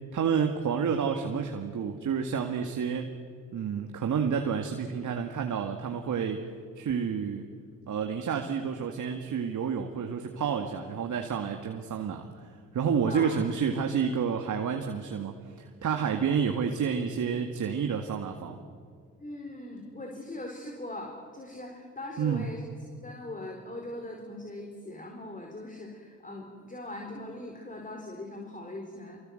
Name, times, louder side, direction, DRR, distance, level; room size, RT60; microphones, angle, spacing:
voice 1, 0.1-3.1 3.5-6.4 6.8-7.4 7.9-12.5 12.7-18.6 22.2-22.5, right 7 dB, 50° right, 4 dB, 2.1 m, -29 dB
voice 2, 13.0-13.4 19.2-22.6 23.0-29.2, left 1 dB, 20° left, 2 dB, 4.6 m, -40 dB
25.5 x 23.5 x 7.9 m, 2.2 s
hypercardioid pair, 55°, 38 cm